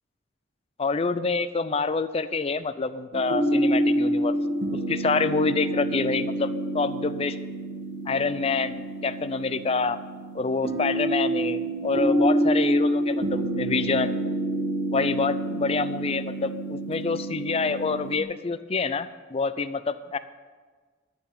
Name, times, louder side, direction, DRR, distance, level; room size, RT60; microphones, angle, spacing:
voice 1, 0.8-4.4 4.7-6.5 6.7-7.4 8.1-10.0 10.3-14.2 14.9-20.2, left 4 dB, 30° left, 13 dB, 0.4 m, -27 dB
sound 1, 3.1-18.2, right 1 dB, 65° right, 1.7 m, -27 dB
14.0 x 4.7 x 9.1 m, 1.5 s
head